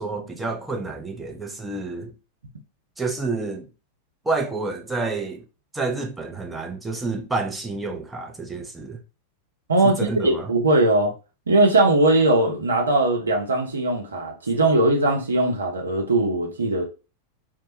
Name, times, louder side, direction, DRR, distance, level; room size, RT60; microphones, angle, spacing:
voice 1, 0.0-2.1 3.0-3.7 4.2-5.4 5.7-9.0 9.8-10.5, right 3 dB, 10° right, 0.5 m, -29 dB
voice 2, 10.2-11.1 11.5-16.8, right 2 dB, 75° right, 0.7 m, -20 dB
2.2 x 2.1 x 2.9 m
figure-of-eight pair, 90°, 0 cm